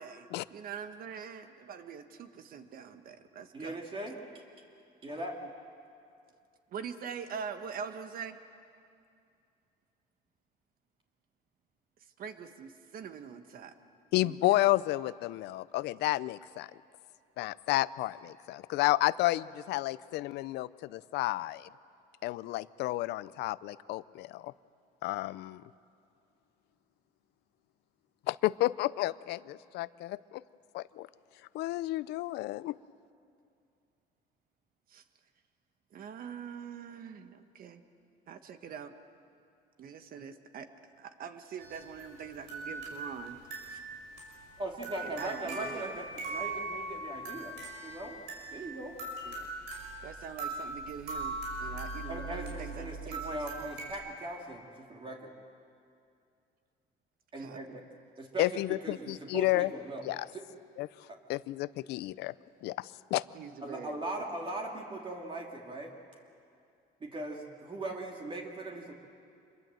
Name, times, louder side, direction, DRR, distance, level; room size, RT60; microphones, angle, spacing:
voice 1, 0.5-3.8 6.7-8.4 12.2-13.7 14.2-14.6 34.9-35.0 35.9-37.8 38.3-38.9 39.8-40.7 41.0-43.4 43.7-43.8 45.0-45.8 49.2-49.5 50.0-53.8 57.3-57.8 63.3-64.0, right 7 dB, 60° right, 9 dB, 1.5 m, -44 dB
voice 2, 3.5-4.4 5.0-5.3 44.6-48.2 48.5-49.0 52.1-55.3 57.3-57.8 58.2-58.5 58.8-60.0 60.3-60.4 61.1-61.2 63.6-65.9 67.0-68.9, right 2 dB, 30° right, 0 dB, 2.8 m, -40 dB
voice 3, 14.1-16.7 17.4-21.7 22.2-24.5 25.0-25.6 28.3-30.4 30.7-31.1 31.5-32.8 58.4-59.7 60.0-60.3 60.8-60.9 61.3-62.3 62.6-63.2, left 17 dB, 80° left, 18 dB, 0.5 m, -31 dB
sound 1, 41.6-53.9, right 2 dB, 80° right, 5.9 m, -40 dB
26.0 x 22.0 x 7.8 m, 2.5 s
cardioid pair, 110°, 17 cm